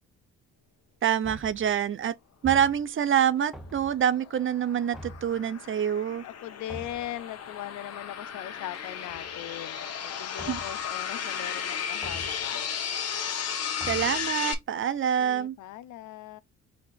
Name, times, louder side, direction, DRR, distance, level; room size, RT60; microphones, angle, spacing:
voice 1, 1.0-2.1 2.4-6.2 10.5-10.6 13.9-15.6, right 9 dB, 45° right, 0.5 m, -26 dB
sound 1, 1.2-1.8 2.4-3.1 3.5-4.1 4.9-5.4 6.7-7.2 8.7-9.5 10.4-10.9 12.0-12.5 13.8-14.3, right 1 dB, ahead, 0.8 m, -44 dB
sound 2, 3.7-14.5, left 7 dB, 55° left, 1.1 m, -34 dB
voice 2, 5.8-12.7 15.2-16.4, left 13 dB, 75° left, 0.5 m, -40 dB
4.2 x 2.5 x 4.5 m
cardioid pair, 90°, 30 cm